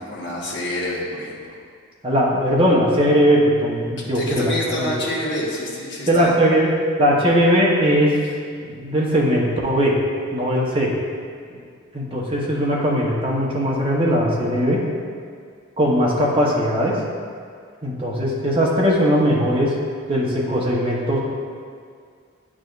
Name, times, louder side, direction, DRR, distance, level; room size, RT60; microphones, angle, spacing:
voice 1, 0.0-1.6 4.1-6.3, left 1 dB, 55° left, -4 dB, 1.2 m, -27 dB
voice 2, 2.0-4.9 6.1-6.7 7.0-8.1 8.5-9.9 10.3-10.9 11.9-14.8 15.8-17.0 17.8-19.7 20.1-21.2, equal, 25° right, -4 dB, 0.9 m, -19 dB
9.1 x 4.9 x 2.5 m, 2.1 s
head